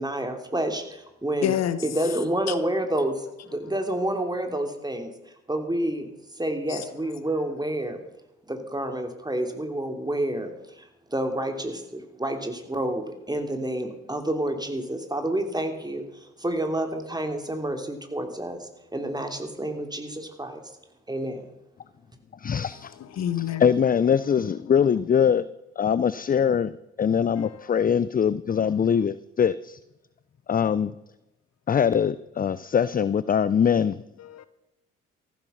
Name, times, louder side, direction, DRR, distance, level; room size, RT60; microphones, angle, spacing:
voice 1, 0.0-1.5 1.8-5.1 5.5-6.1 6.3-8.0 8.5-20.6 21.1-21.5, right 1 dB, 10° right, 3.2 m, -29 dB
voice 2, 1.4-1.9 2.5-2.6 3.5-3.6 6.7-6.9 7.2-7.5 22.5-23.7 27.4-27.7 28.5-29.0 34.2-34.5, left 10 dB, 55° left, 1.0 m, -31 dB
voice 3, 22.4-23.0 23.6-25.5 25.8-29.8 30.5-30.9 31.7-34.0, left 7 dB, 25° left, 0.6 m, -22 dB
14.5 x 12.5 x 5.7 m
hypercardioid pair, 45°, 32 cm